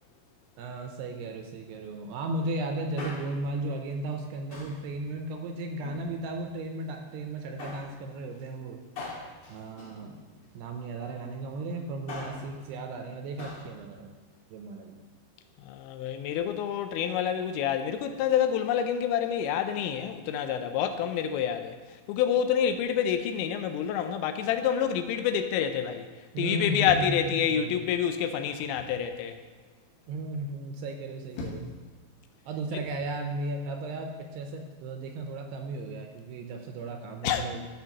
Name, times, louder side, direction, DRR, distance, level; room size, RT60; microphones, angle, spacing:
voice 1, 0.6-8.8 9.5-10.2 10.5-14.2 14.5-15.0 26.3-27.8 30.1-31.7 32.5-37.7, right 2 dB, 80° right, 4 dB, 2.5 m, -35 dB
Male speech man speaking, 3.0-3.6 4.5-4.9 5.7-6.5 7.6-8.0 9.0-10.6 11.9-12.5 13.4-13.7 14.0-14.1, left 2 dB, 45° left, 2.1 m, -42 dB
voice 2, 15.7-21.7 22.1-26.1 26.4-29.3 37.2-37.5, left 9 dB, 85° left, 7 dB, 2.9 m, -27 dB
sound 1, 26.8-27.9 28.6-29.0 31.0-31.9 32.8-33.1, left 3 dB, 65° left, 2.6 m, -42 dB
14.5 x 6.3 x 2.9 m, 1.4 s
omnidirectional pair, 5.2 m